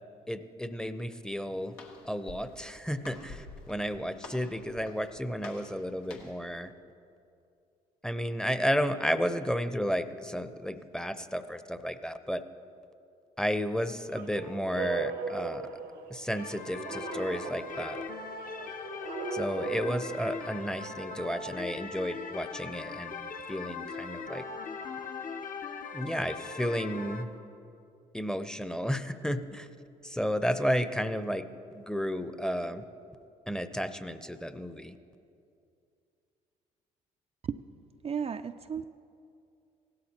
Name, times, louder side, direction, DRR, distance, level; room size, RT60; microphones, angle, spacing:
voice 1, 0.3-1.8 2.0-6.7 8.0-12.4 13.4-15.6 16.1-18.0 19.3-24.4 25.9-27.3 28.1-29.7 30.0-31.5 31.7-32.8 33.5-35.0, equal, 5° left, 11 dB, 0.7 m, -32 dB
Walk footsteps, 1.1-6.5, left 3 dB, 85° left, 1.1 m, -50 dB
sound 1, 14.1-20.9, right 5 dB, 75° right, 1.0 m, -39 dB
sound 2, 16.4-27.2, left 4 dB, 50° left, 1.0 m, -40 dB
voice 2, 38.0-38.8, right 7 dB, 35° right, 7 dB, 0.4 m, -34 dB
17.0 x 12.5 x 2.9 m, 2.5 s
hypercardioid pair, 50°, 18 cm